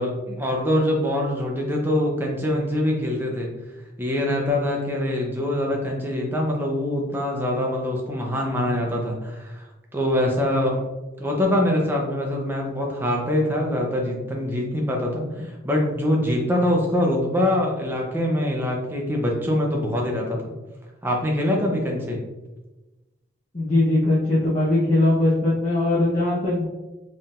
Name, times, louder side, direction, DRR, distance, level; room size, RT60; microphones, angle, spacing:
voice 1, 0.0-3.5 4.0-9.7 9.9-10.8 11.2-20.5 21.0-22.2, left 1 dB, 10° right, -1 dB, 0.7 m, -24 dB
voice 2, 23.5-26.6, left 2 dB, 40° left, -10 dB, 0.9 m, -20 dB
4.6 x 3.7 x 2.5 m, 1.1 s
head